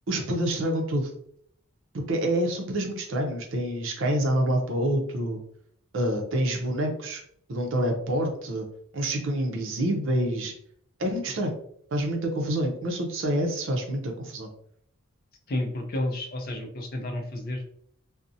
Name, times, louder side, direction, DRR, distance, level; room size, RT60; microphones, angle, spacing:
voice 1, 0.1-1.1 1.9-5.4 5.9-7.2 7.5-8.7 8.9-10.5 11.0-11.5 11.9-14.5, right 1 dB, 60° right, 2 dB, 0.5 m, -27 dB
voice 2, 15.5-17.6, left 1 dB, 45° left, 3 dB, 0.4 m, -31 dB
2.5 x 2.0 x 2.6 m, 0.67 s
head